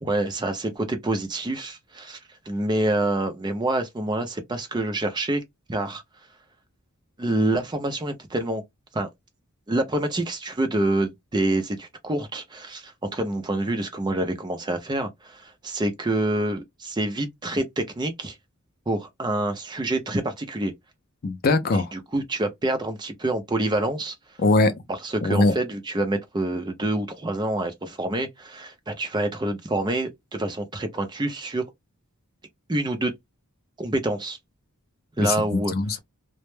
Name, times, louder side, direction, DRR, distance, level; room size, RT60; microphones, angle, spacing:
voice 1, 0.0-2.2 2.5-5.4 5.7-6.0 7.2-8.6 8.9-9.1 9.7-18.4 18.9-20.7 21.9-24.2 24.9-31.6 32.7-33.1 33.8-34.4 35.2-35.7, right 1 dB, 20° right, 0.4 m, -27 dB
voice 2, 21.2-21.9 24.4-24.7 25.2-25.5 35.2-36.0, left 3 dB, 45° left, 0.4 m, -21 dB
2.1 x 2.0 x 3.0 m
head